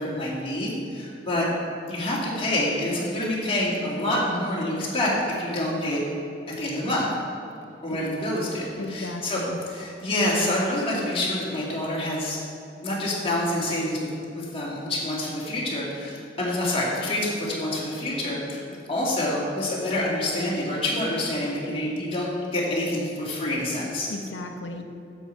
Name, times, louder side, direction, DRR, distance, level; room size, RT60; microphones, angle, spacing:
voice 1, 0.0-1.5 1.9-5.1 5.4-6.0 6.6-7.1 7.8-9.4 9.7-12.4 12.8-14.0 14.3-18.6 18.9-22.3 22.5-24.1, left 1 dB, 30° left, -5 dB, 2.2 m, -27 dB
voice 2, 8.8-9.6 24.1-24.8, left 2 dB, 75° left, 4 dB, 0.8 m, -35 dB
9.9 x 7.5 x 4.5 m, 2.7 s
head